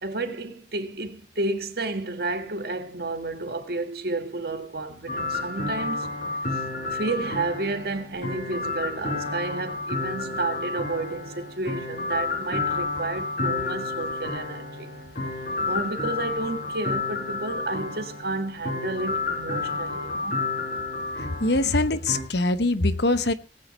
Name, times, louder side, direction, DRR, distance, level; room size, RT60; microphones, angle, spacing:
voice 1, 0.0-6.1 6.9-14.9 15.6-20.4, right 2 dB, 60° right, 1.9 m, -31 dB
sound 1, 5.1-22.2, left 3 dB, 50° left, 5.5 m, -30 dB
voice 2, 21.2-23.3, left 2 dB, 65° left, 1.0 m, -23 dB
19.5 x 9.1 x 4.3 m
head